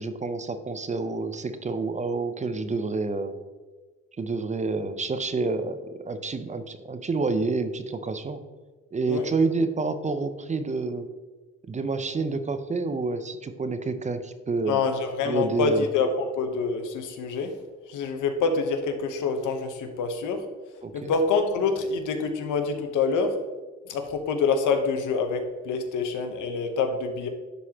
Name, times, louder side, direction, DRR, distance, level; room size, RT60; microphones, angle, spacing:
voice 1, 0.0-3.3 4.2-8.4 8.9-11.1 11.7-14.8 15.2-15.9 20.8-21.1, right 3 dB, 25° right, 10 dB, 0.5 m, -28 dB
voice 2, 14.7-17.5 17.9-20.4 20.9-23.3 23.9-27.3, left 4 dB, 80° left, 6 dB, 0.9 m, -26 dB
11.0 x 4.0 x 2.9 m, 1.3 s
cardioid pair, 90°, 30 cm